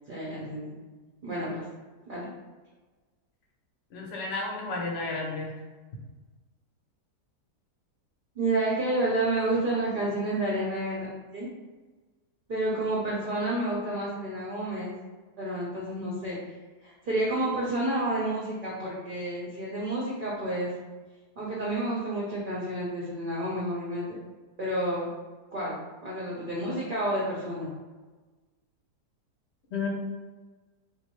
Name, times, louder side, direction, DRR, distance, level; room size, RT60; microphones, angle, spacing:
voice 1, 0.1-0.8 1.2-1.6 2.1-2.3 8.3-11.1 11.3-11.5 12.5-14.9 15.4-16.4 16.8-20.7 21.4-24.1 24.6-25.1 25.5-27.7, right 1 dB, 50° right, -6 dB, 0.6 m, -30 dB
voice 2, 3.9-5.5 29.7-29.9, left 3 dB, 55° left, -1 dB, 0.7 m, -32 dB
3.6 x 2.6 x 3.0 m, 1.3 s
omnidirectional pair, 1.8 m